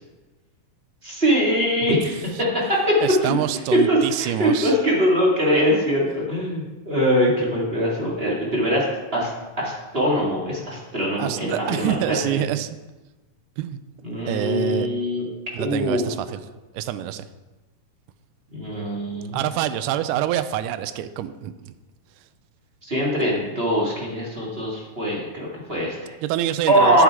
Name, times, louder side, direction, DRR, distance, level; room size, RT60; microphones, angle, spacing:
voice 1, 1.0-3.3 3.7-8.9 9.1-9.3 9.6-12.4 14.0-15.2 15.6-16.1 18.5-19.4 22.8-26.1 26.7-27.0, equal, 20° right, -4 dB, 1.8 m, -22 dB
voice 2, 3.0-4.7 11.2-12.8 13.6-13.8 14.3-14.9 15.5-16.4 16.7-17.3 19.3-21.7 26.2-27.0, right 12 dB, 80° right, 12 dB, 1.9 m, -26 dB
9.6 x 7.2 x 4.7 m, 1.1 s
omnidirectional pair, 3.9 m